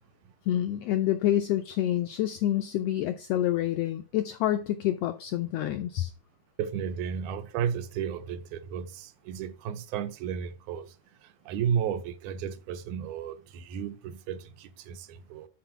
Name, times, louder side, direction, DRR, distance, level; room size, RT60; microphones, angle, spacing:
voice 1, 0.5-6.1, left 12 dB, 85° left, 1.4 m, -27 dB
voice 2, 6.6-10.9 11.5-15.5, right 8 dB, 85° right, 2.1 m, -33 dB
5.8 x 4.5 x 5.7 m
omnidirectional pair, 3.4 m